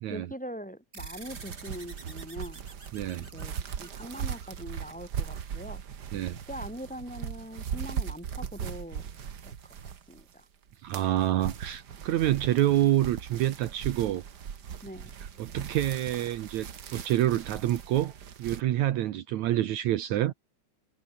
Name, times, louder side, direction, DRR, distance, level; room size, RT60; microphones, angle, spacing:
voice 1, 0.1-2.6 3.2-5.8 6.5-9.1 9.4-9.6 9.8-10.5 14.8-15.1, equal, ahead, 5.7 m, -42 dB
sound 1, 0.9-5.8, right 3 dB, 20° right, 3.1 m, -50 dB
sound 2, 1.0-10.3 10.7-18.6, right 8 dB, 45° right, 1.4 m, -39 dB
voice 2, 2.9-3.2 6.1-6.4 10.8-14.2 15.4-16.7 16.9-18.1 18.4-20.3, right 13 dB, 70° right, 2.3 m, -27 dB
omnidirectional pair, 3.6 m